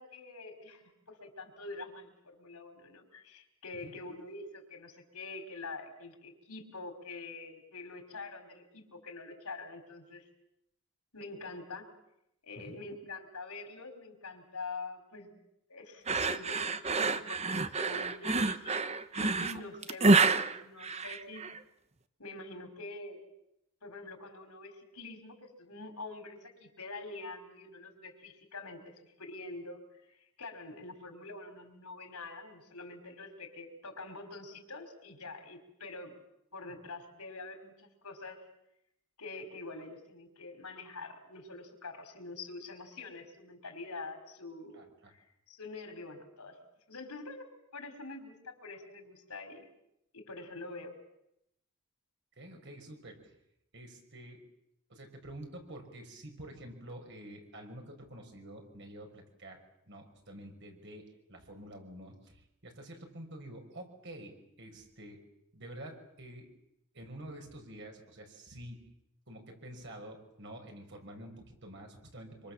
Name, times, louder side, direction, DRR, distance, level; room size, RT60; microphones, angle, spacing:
voice 1, 0.0-10.3 11.1-11.9 12.4-15.3 15.7-18.8 19.1-21.5 22.2-23.2 23.8-28.9 29.2-36.2 36.5-38.4 39.2-46.6 46.9-49.7 50.1-50.9, left 3 dB, 85° left, 5 dB, 5.2 m, -45 dB
sound 1, 16.1-21.6, right 3 dB, 30° right, 1.0 m, -28 dB
voice 2, 44.7-45.1 52.4-53.3 53.7-54.4 54.9-65.2 65.5-66.5 66.9-68.9 69.3-72.5, right 1 dB, 55° right, 3 dB, 5.6 m, -48 dB
26.5 x 25.0 x 7.5 m, 0.81 s
head